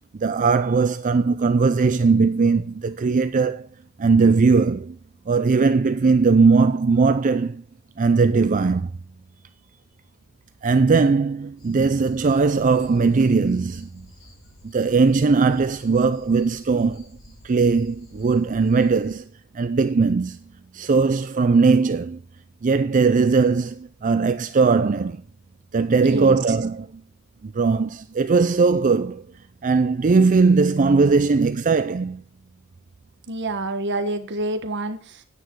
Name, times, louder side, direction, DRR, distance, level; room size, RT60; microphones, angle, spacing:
voice 1, 0.2-3.7 4.0-5.0 5.3-7.6 8.0-8.9 10.6-14.1 14.6-17.1 17.4-19.3 19.5-20.4 20.7-22.2 22.6-25.2 25.7-27.0 27.4-29.2 29.6-32.2, right 4 dB, 35° right, 0.4 m, -19 dB
sound 1, 11.6-19.2, left 1 dB, 65° left, 4.6 m, -50 dB
voice 2, 26.0-26.4 33.3-35.2, right 1 dB, 55° right, 1.3 m, -27 dB
9.6 x 8.9 x 4.6 m
head